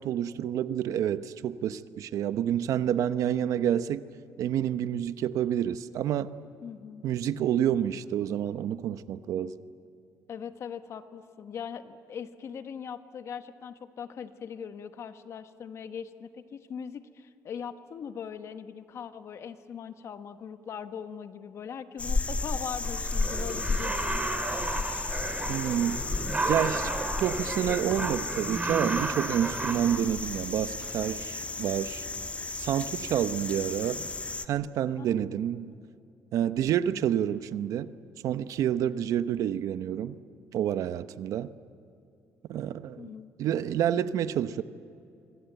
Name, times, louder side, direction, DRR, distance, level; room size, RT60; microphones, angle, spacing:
voice 1, 0.0-4.0 4.4-6.3 7.0-9.5 25.5-26.0 26.5-26.9 27.2-32.1 32.6-34.1 34.5-35.7 36.3-37.9 38.2-40.2 40.5-41.5 42.5-43.1 43.4-44.6, right 10 dB, 70° right, 0.8 m, -28 dB
voice 2, 6.6-7.0 10.3-24.4 35.0-35.4 43.0-43.3, left 7 dB, 55° left, 1.3 m, -40 dB
sound 1, 22.0-34.5, left 3 dB, 25° left, 1.2 m, -33 dB
sound 2, 22.8-30.0, right 2 dB, 20° right, 2.5 m, -33 dB
sound 3, 25.0-32.2, equal, ahead, 6.0 m, -53 dB
25.5 x 25.0 x 8.1 m
cardioid pair, 120°, 6 cm